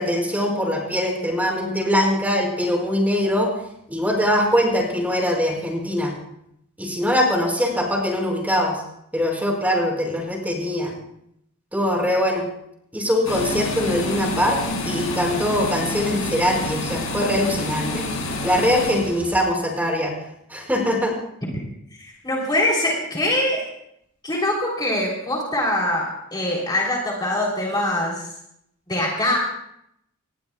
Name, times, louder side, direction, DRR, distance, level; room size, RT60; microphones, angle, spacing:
voice 1, 0.0-3.5 3.9-6.1 6.8-8.8 9.1-10.9 11.7-12.4 12.9-18.0 18.4-20.1 20.5-21.1, equal, 10° right, 0 dB, 5.1 m, -22 dB
sound 1, 13.2-19.4, left 2 dB, 75° left, 7.9 m, -28 dB
voice 2, 22.0-23.6 24.2-28.3 28.9-29.4, left 1 dB, 20° left, -2 dB, 3.5 m, -23 dB
27.0 x 20.0 x 2.3 m, 0.75 s
head